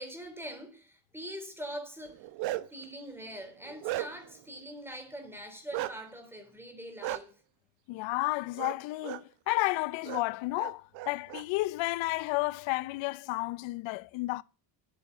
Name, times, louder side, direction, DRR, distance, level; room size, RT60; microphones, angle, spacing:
voice 1, 0.0-2.3 2.7-7.3, equal, 5° right, 3.8 m, -43 dB
Bark, 2.1-2.8 3.3-4.4 5.7-5.9 7.0-7.2 8.6-8.8 9.0-9.2 10.0-10.2 10.6-11.4, right 16 dB, 80° right, 1.0 m, -35 dB
voice 2, 7.9-14.4, left 21 dB, 85° left, 0.8 m, -32 dB
9.5 x 8.9 x 7.3 m
cardioid pair, 130°, 44 cm